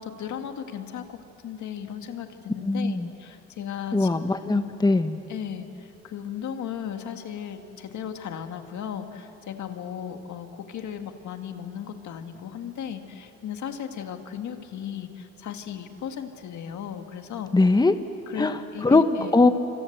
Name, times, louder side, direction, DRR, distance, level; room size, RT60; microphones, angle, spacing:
voice 1, 0.0-4.6 5.3-17.5 18.3-19.3, left 8 dB, 70° left, 6 dB, 1.9 m, -36 dB
voice 2, 2.7-3.1 3.9-5.2 17.5-17.9 18.4-18.6 18.8-19.0 19.3-19.5, left 3 dB, 15° left, 9 dB, 1.1 m, -20 dB
27.0 x 26.0 x 8.0 m, 2.8 s
cardioid pair, 90°, 30 cm